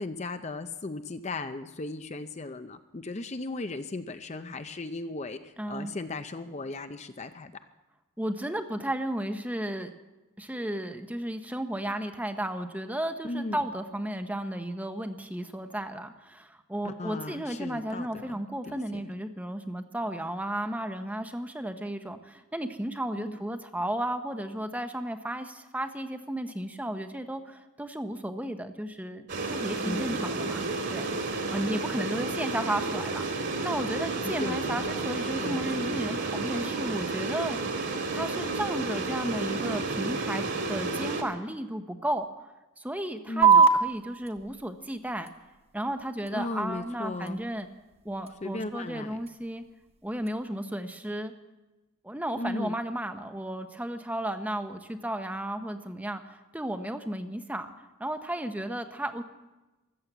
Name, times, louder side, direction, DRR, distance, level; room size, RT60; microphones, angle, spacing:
voice 1, 0.0-7.5 13.2-13.6 16.8-18.4 18.7-19.0 23.2-23.4 29.8-30.2 34.4-34.9 35.2-35.9 43.3-43.6 46.3-47.4 48.4-49.2 52.3-52.8, left 2 dB, 30° left, 9 dB, 0.5 m, -36 dB
voice 2, 5.6-5.9 8.2-9.9 10.4-31.1 31.5-37.8 38.1-42.3 42.8-45.3 45.7-47.7 48.0-49.6 50.0-51.3 52.0-57.7 58.0-59.2, right 1 dB, 5° right, 8 dB, 0.8 m, -34 dB
sound 1, 29.3-41.2, right 3 dB, 55° right, 2.4 m, -31 dB
sound 2, 43.4-50.4, right 5 dB, 30° right, 1.1 m, -28 dB
14.5 x 12.5 x 8.0 m, 1.1 s
head